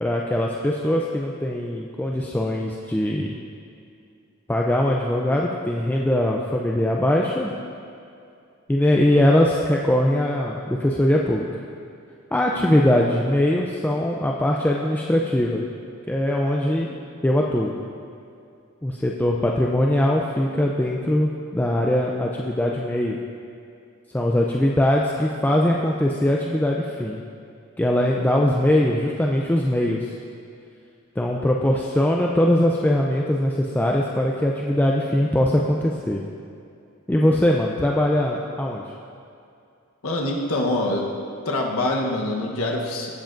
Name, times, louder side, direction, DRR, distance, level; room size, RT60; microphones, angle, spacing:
voice 1, 0.0-3.4 4.5-7.5 8.7-11.5 12.3-15.6 16.1-17.0 17.2-17.7 18.8-23.2 24.1-27.2 27.8-30.1 31.2-36.2 37.1-38.8, left 1 dB, 10° left, -2 dB, 0.4 m, -21 dB
voice 2, 40.0-41.1 41.4-43.1, left 1 dB, 80° left, -1 dB, 1.0 m, -24 dB
16.0 x 7.6 x 2.5 m, 2.4 s
head